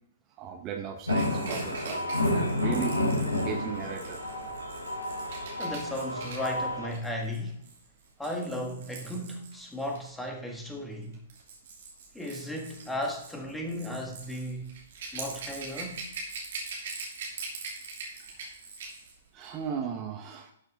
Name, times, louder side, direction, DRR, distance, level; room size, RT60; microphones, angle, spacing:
voice 1, 0.4-3.0 3.3-4.2 5.3-5.6 18.2-18.5 19.3-20.5, right 7 dB, 25° right, 1.0 m, -37 dB
sound 1, 1.1-6.9, left 1 dB, 85° left, 3.6 m, -30 dB
Rattle / Rattle (instrument), 1.1-10.1 11.0-19.1 19.4-19.6, right 4 dB, 50° right, 2.7 m, -43 dB
voice 2, 5.6-7.6 8.2-11.2 12.1-14.7 15.1-16.1, left 1 dB, 5° left, 1.6 m, -35 dB
12.0 x 6.4 x 3.6 m
figure-of-eight pair, 115°, 0 cm